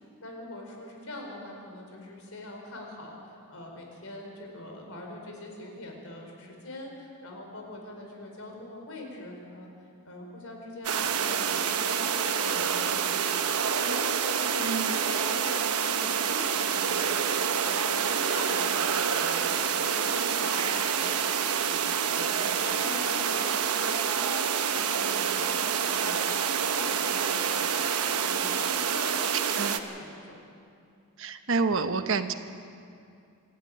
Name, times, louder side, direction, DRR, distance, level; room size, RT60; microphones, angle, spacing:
voice 1, 0.0-30.4, left 1 dB, 70° left, 1 dB, 4.6 m, -43 dB
sound 1, 10.8-29.8, right 7 dB, 90° right, 1.1 m, -27 dB
voice 2, 14.6-15.0 29.5-29.8 31.2-32.4, right 4 dB, 60° right, 9 dB, 1.0 m, -28 dB
27.0 x 12.0 x 9.1 m, 2.4 s
head